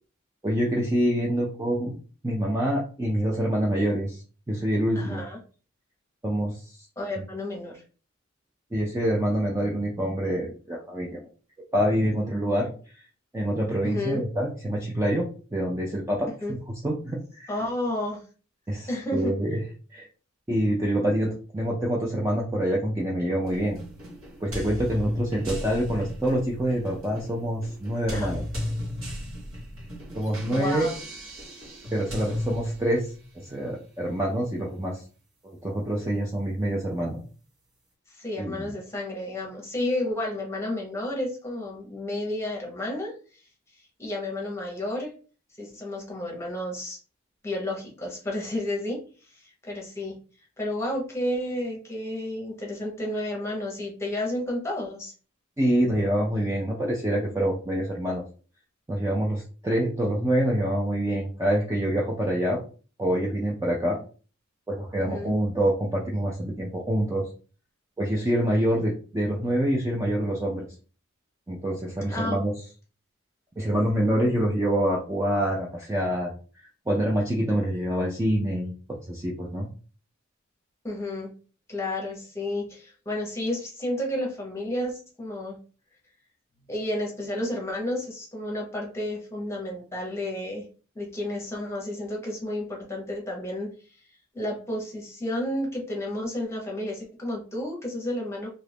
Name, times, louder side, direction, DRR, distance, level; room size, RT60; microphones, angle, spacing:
voice 1, 0.4-2.0 2.2-5.2 6.2-6.9 8.7-11.2 11.7-12.7 13.3-16.6 16.8-17.5 18.7-19.6 19.9-20.1 20.5-23.8 24.4-28.4 30.1-30.9 31.9-35.0 35.4-37.2 38.4-38.7 55.6-58.2 58.9-62.6 63.0-64.0 64.7-67.2 68.0-70.7 71.5-72.5 73.6-76.3 76.9-78.7 79.1-79.7, right 1 dB, 15° right, -3 dB, 0.4 m, -26 dB
voice 2, 4.9-5.4 7.0-7.8 13.8-14.2 16.4-16.5 17.5-18.2 18.9-19.3 28.1-28.3 30.5-30.9 38.1-43.1 44.0-45.1 45.6-47.0 47.4-49.0 49.4-50.2 50.6-55.1 65.0-65.3 72.1-72.4 80.8-81.3 81.7-85.6 86.7-90.7 90.9-93.7 94.3-98.5, left 1 dB, 10° left, -1 dB, 0.9 m, -31 dB
sound 1, 23.4-33.3, left 1 dB, 75° right, 1.3 m, -35 dB
2.8 x 2.5 x 3.4 m, 0.38 s
head